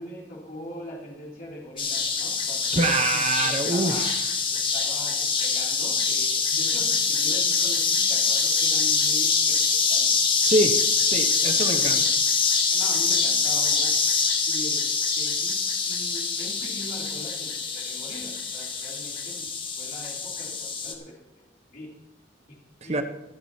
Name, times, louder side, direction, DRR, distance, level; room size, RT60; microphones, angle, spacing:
voice 1, 0.0-2.8 3.4-4.1 4.5-10.1 11.6-12.1 12.7-14.0 14.5-14.9 15.2-15.5 15.8-19.5 19.8-21.4 21.7-21.9 22.8-23.0, left 1 dB, 50° left, -4 dB, 3.2 m, -41 dB
sound 1, 1.8-20.9, left 5 dB, 25° left, 1.6 m, -24 dB
voice 2, 2.7-4.2 10.4-10.8 11.0-12.0 22.8-23.0, right 2 dB, 35° right, 7 dB, 1.1 m, -25 dB
24.5 x 9.9 x 2.9 m, 0.94 s
head